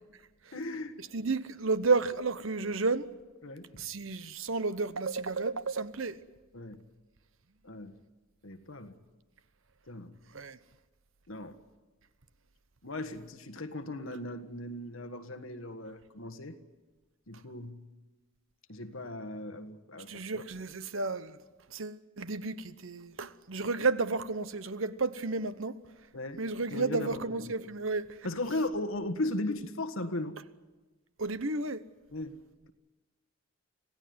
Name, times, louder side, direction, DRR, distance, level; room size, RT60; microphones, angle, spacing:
voice 1, 0.5-1.0 3.4-3.7 6.5-6.8 7.6-7.9 8.4-9.0 9.9-10.1 11.3-11.6 12.8-16.6 17.3-17.8 18.7-20.4 26.1-26.4 26.7-27.2 28.2-30.4 32.1-32.4, left 2 dB, 75° left, 1.6 m, -37 dB
voice 2, 1.1-3.1 3.8-6.2 10.3-10.6 20.1-21.4 21.7-25.8 26.4-28.2 31.2-31.8, right 3 dB, 70° right, 1.0 m, -32 dB
26.5 x 16.5 x 9.5 m
head